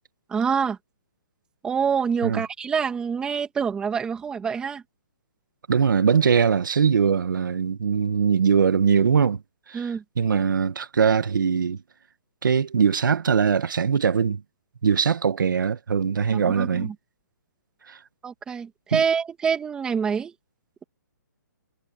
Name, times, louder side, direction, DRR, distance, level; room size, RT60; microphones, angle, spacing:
voice 1, 0.3-0.8 1.6-4.8 9.7-10.0 16.3-16.9 18.2-20.3, right 6 dB, 10° right, 2.6 m, -26 dB
voice 2, 5.7-9.4 9.7-11.8 12.4-14.4 14.8-16.9 17.9-18.0 18.9-19.0, right 6 dB, 80° right, 1.8 m, -21 dB
hypercardioid pair, 170°, 11 cm